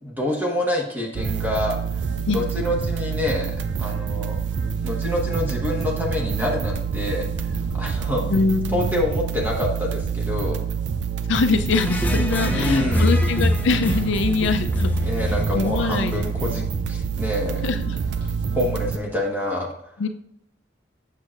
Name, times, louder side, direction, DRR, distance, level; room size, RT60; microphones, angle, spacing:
voice 1, 0.0-4.4 4.8-8.2 8.7-10.6 12.4-13.1 15.0-17.6 18.5-19.7, left 1 dB, 10° right, -1 dB, 1.2 m, -27 dB
sound 1, 1.1-19.0, right 6 dB, 70° right, 0.4 m, -27 dB
sound 2, 4.7-5.3 6.1-6.9 7.5-8.3 8.9-9.5 10.2-11.0 11.5-12.2 12.7-13.5 13.8-14.7 15.0-16.5 18.0-18.9, equal, 25° right, 2.9 m, -41 dB
voice 2, 8.2-9.0 11.3-14.9 15.5-16.2 17.6-18.0 20.0-20.1, left 4 dB, 85° left, 8 dB, 0.4 m, -23 dB
sound 3, 11.7-16.7, left 1 dB, 10° left, 0.5 m, -25 dB
7.9 x 6.5 x 2.4 m, 0.73 s
head